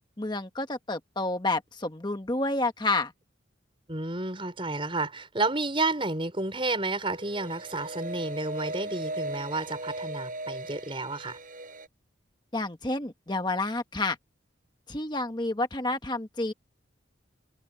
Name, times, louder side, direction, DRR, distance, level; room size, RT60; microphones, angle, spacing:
voice 1, 0.2-3.1 12.5-14.2 14.9-16.5, left 2 dB, 20° left, 1.3 m, -29 dB
voice 2, 3.9-11.4, right 2 dB, 25° right, 5.1 m, -31 dB
sound 1, 7.1-11.9, right 2 dB, 40° right, 7.7 m, -38 dB
head